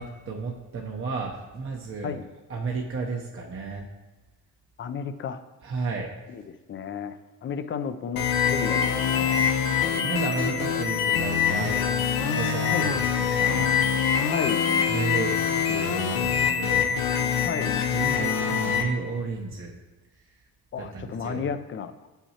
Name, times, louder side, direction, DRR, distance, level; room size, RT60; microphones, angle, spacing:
voice 1, 0.0-2.2 2.5-3.9 5.6-6.1 10.0-11.9 12.3-13.8 14.9-15.3 15.7-16.9 17.9-19.7 20.8-21.4, right 4 dB, 35° right, -2 dB, 0.8 m, -32 dB
voice 2, 4.8-5.4 6.3-9.5 12.7-12.9 14.3-14.6 17.4-17.8 20.7-22.1, left 7 dB, 30° left, 11 dB, 0.5 m, -33 dB
sound 1, 8.2-18.8, left 7 dB, 70° left, 0.8 m, -24 dB
7.0 x 5.7 x 2.9 m, 1.2 s
supercardioid pair, 80°, 37 cm